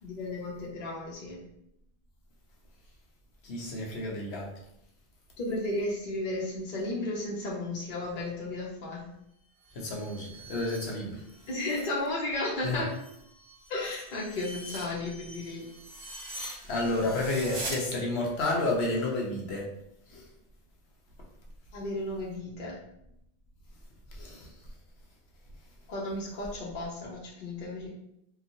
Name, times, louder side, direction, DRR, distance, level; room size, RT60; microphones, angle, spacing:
voice 1, 0.0-1.4 5.4-9.1 11.5-12.9 13.7-15.7 21.7-22.7 25.9-27.9, left 2 dB, 60° left, -4 dB, 0.8 m, -34 dB
voice 2, 3.4-4.5 9.7-11.2 12.6-12.8 16.7-19.7 20.1-20.3 24.1-24.5, left 2 dB, 85° left, -1 dB, 1.0 m, -31 dB
sound 1, 9.5-11.9 12.3-17.8, right 1 dB, 65° right, 0.9 m, -43 dB
2.9 x 2.3 x 2.6 m, 0.77 s
omnidirectional pair, 1.0 m